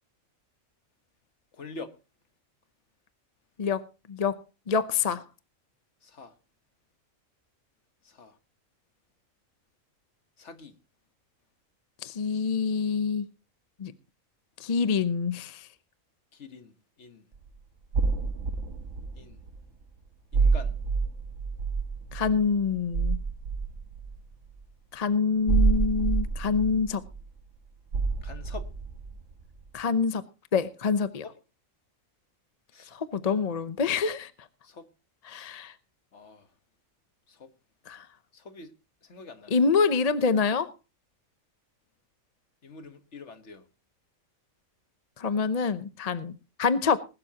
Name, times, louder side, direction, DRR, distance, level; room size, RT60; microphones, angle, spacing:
voice 1, 1.5-1.9 6.0-6.3 8.1-8.4 10.4-10.7 16.3-16.7 17.0-17.2 19.2-19.4 20.3-20.7 28.2-28.7 31.2-31.3 32.7-33.0 34.6-34.9 35.3-35.6 36.1-36.5 37.3-37.5 38.3-38.7 39.0-39.6 42.6-43.6, left 4 dB, 60° left, 1.6 m, -45 dB
voice 2, 3.6-4.4 4.7-5.2 12.0-13.2 13.8-13.9 14.6-15.7 22.1-23.2 24.9-27.0 29.7-30.2 30.5-31.2 32.9-34.3 35.2-35.7 37.9-38.1 39.5-40.7 45.2-47.0, left 5 dB, 35° left, 0.7 m, -26 dB
sound 1, 17.3-17.5 17.9-19.6 20.3-24.5 25.5-27.5 27.9-29.6, right 4 dB, 65° right, 1.5 m, -28 dB
20.0 x 12.0 x 2.9 m
omnidirectional pair, 1.4 m